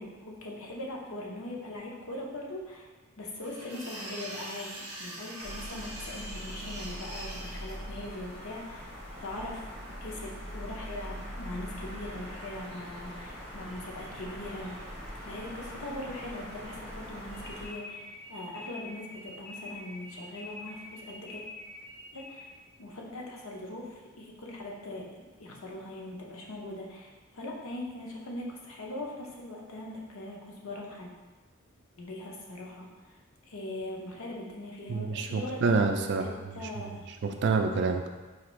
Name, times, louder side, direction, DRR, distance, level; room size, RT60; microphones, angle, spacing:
voice 1, 0.0-2.9 3.2-8.9 9.2-9.7 10.0-14.9 15.2-21.4 22.1-22.5 22.8-25.0 25.4-31.1 32.0-33.2 33.5-35.8 36.2-37.1, left 1 dB, 85° left, -1 dB, 0.7 m, -41 dB
sound 1, 3.4-7.7, right 1 dB, 30° right, 1.2 m, -42 dB
sound 2, 5.4-17.7, equal, 25° left, 1.1 m, -42 dB
sound 3, 17.3-22.6, left 2 dB, 5° left, 0.7 m, -46 dB
voice 2, 34.9-38.1, right 4 dB, 55° right, 5 dB, 0.3 m, -28 dB
4.2 x 2.5 x 3.1 m, 1.2 s
head